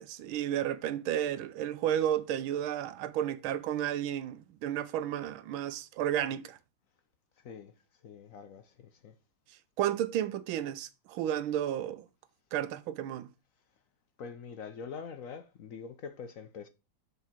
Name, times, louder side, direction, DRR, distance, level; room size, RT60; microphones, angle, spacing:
voice 1, 0.0-6.6 9.8-12.1 12.5-13.3, right 11 dB, 85° right, 1.5 m, -32 dB
voice 2, 8.0-9.2 14.2-16.7, left 6 dB, 65° left, 0.8 m, -44 dB
6.7 x 4.7 x 4.4 m
omnidirectional pair, 2.2 m